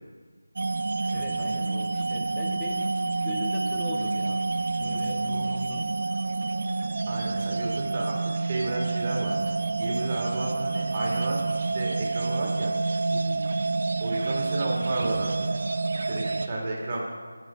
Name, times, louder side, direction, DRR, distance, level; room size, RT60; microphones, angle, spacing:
sound 1, 0.6-16.5, right 3 dB, 45° right, 0.4 m, -28 dB
voice 1, 1.1-2.9 3.2-4.5 4.8-5.9 13.1-13.5, left 2 dB, 5° left, -2 dB, 0.5 m, -39 dB
voice 2, 7.1-9.3 9.8-11.4 11.7-12.8 14.0-15.3 16.1-17.0, right 2 dB, 30° right, -2 dB, 1.8 m, -32 dB
9.8 x 5.1 x 5.1 m, 1.5 s
figure-of-eight pair, 170°, 0 cm